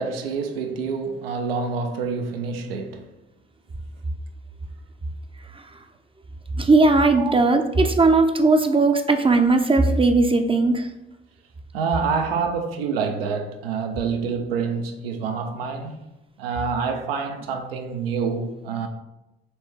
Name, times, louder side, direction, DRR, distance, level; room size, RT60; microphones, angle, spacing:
voice 1, 0.0-3.0 7.2-7.3 11.7-16.0 16.4-18.9, right 5 dB, 80° right, 0.5 m, -27 dB
voice 2, 6.6-10.9, right 3 dB, 20° right, 0.5 m, -18 dB
4.3 x 3.4 x 3.2 m
figure-of-eight pair, 40°, 29 cm